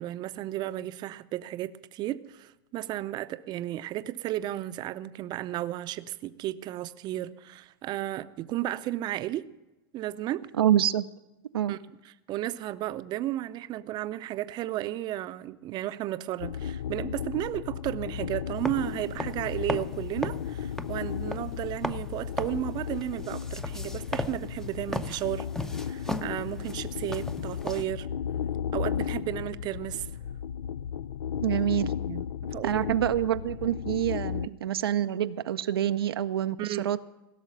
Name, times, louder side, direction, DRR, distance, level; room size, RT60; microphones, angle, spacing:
voice 1, 0.0-9.5 9.9-10.5 11.7-25.5 25.8-28.1 28.7-30.1 32.1-32.9 34.4-34.6 36.6-36.9, right 14 dB, 35° right, 0.6 m, -33 dB
voice 2, 10.6-11.1 11.5-11.7 31.4-31.9 32.6-37.0, right 11 dB, 90° right, 0.5 m, -26 dB
sound 1, 16.4-34.5, left 8 dB, 90° left, 0.4 m, -35 dB
sound 2, 18.6-27.8, left 1 dB, 5° left, 0.6 m, -38 dB
16.5 x 6.4 x 8.9 m
hypercardioid pair, 115°, 12 cm